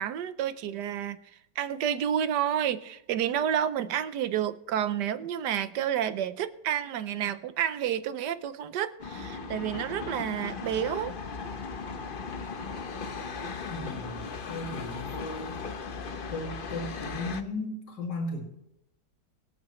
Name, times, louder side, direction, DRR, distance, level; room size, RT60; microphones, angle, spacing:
voice 1, 0.0-11.1, right 9 dB, 70° right, 13 dB, 1.3 m, -30 dB
sound 1, 9.0-17.4, left 4 dB, 50° left, 0.6 m, -37 dB
voice 2, 13.7-14.2 14.5-15.6 16.3-18.4, left 2 dB, 70° left, 0 dB, 3.0 m, -36 dB
23.0 x 8.7 x 3.1 m, 0.83 s
omnidirectional pair, 2.0 m